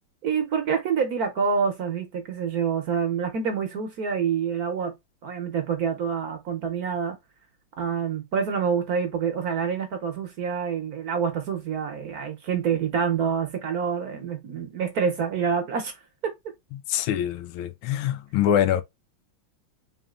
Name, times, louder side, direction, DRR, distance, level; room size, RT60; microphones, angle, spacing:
voice 1, 0.2-4.9 5.2-7.2 7.8-15.9 16.2-16.3, right 6 dB, 55° right, 1.1 m, -27 dB
voice 2, 16.7-18.8, left 10 dB, 85° left, 1.5 m, -24 dB
4.0 x 3.6 x 2.3 m
omnidirectional pair, 2.3 m